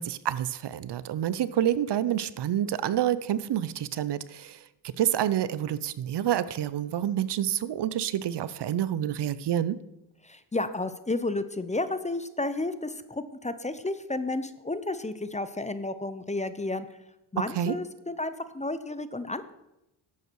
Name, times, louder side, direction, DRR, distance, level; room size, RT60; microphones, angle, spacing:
voice 1, 0.0-4.6 5.0-9.8 17.6-17.8, right 11 dB, 60° right, 17 dB, 0.6 m, -28 dB
voice 2, 10.2-16.9 17.3-19.5, left 2 dB, 15° left, 12 dB, 0.7 m, -32 dB
10.5 x 8.2 x 4.6 m, 0.87 s
cardioid pair, 65°, 46 cm